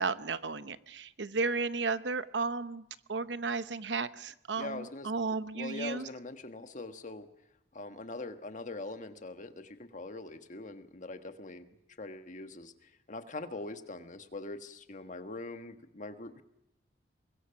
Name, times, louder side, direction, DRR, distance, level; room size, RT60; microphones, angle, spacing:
voice 1, 0.0-6.1, right 4 dB, 75° right, 13 dB, 0.9 m, -34 dB
voice 2, 4.6-5.1 5.5-7.3 7.7-11.7 12.0-16.4, left 2 dB, 45° left, 9 dB, 1.4 m, -42 dB
24.5 x 21.0 x 5.8 m, 0.86 s
head